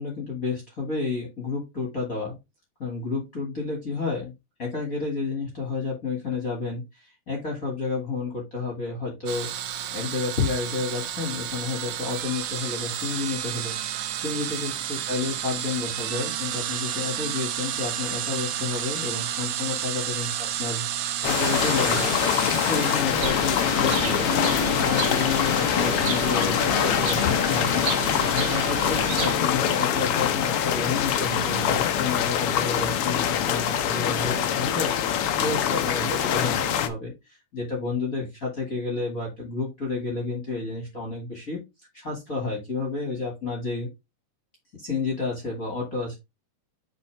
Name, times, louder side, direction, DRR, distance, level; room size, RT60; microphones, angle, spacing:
voice 1, 0.0-2.4 2.8-4.3 4.6-9.5 9.9-13.8 14.2-20.3 20.6-22.1 22.7-24.3 24.7-27.8 28.2-41.6 41.9-43.9 44.8-46.2, left 4 dB, 35° left, -1 dB, 1.6 m, -30 dB
sound 1, 9.3-23.0, right 11 dB, 70° right, 2.0 m, -31 dB
sound 2, 21.2-36.9, left 9 dB, 80° left, 1.3 m, -24 dB
Bird, 23.1-29.3, right 4 dB, 40° right, 1.8 m, -31 dB
6.9 x 4.4 x 4.5 m, 0.23 s
omnidirectional pair, 3.7 m